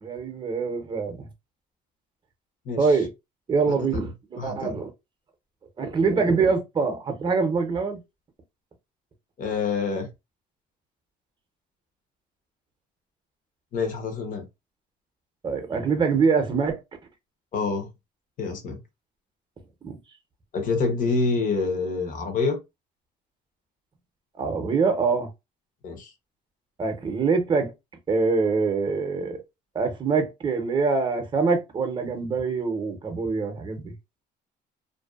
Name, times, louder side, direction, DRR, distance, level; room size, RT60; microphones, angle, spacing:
voice 1, 0.0-1.3 2.8-3.1 3.5-4.9 5.8-8.0 15.4-16.8 19.8-20.0 24.4-25.3 26.8-27.7 28.1-29.4 29.7-33.9, right 4 dB, 25° right, 0.7 m, -24 dB
voice 2, 3.7-4.1 4.4-4.8 9.4-10.1 13.7-14.4 17.5-17.9 18.4-18.8 20.5-22.6 25.8-26.1, left 4 dB, 50° left, 0.9 m, -27 dB
2.6 x 2.2 x 2.3 m
cardioid pair, 110°, 17 cm